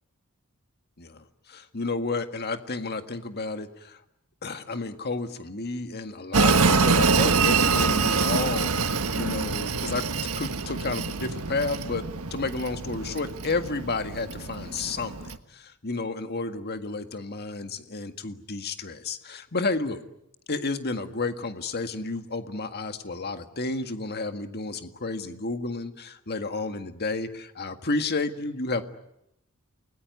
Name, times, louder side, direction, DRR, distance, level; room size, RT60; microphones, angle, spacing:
voice 1, 1.0-4.0 4.4-10.1 10.3-20.0 20.5-28.8, left 3 dB, 50° left, 8 dB, 1.8 m, -31 dB
Train, 6.3-15.4, right 4 dB, 80° right, 1.4 m, -25 dB
29.5 x 20.0 x 9.6 m, 0.83 s
head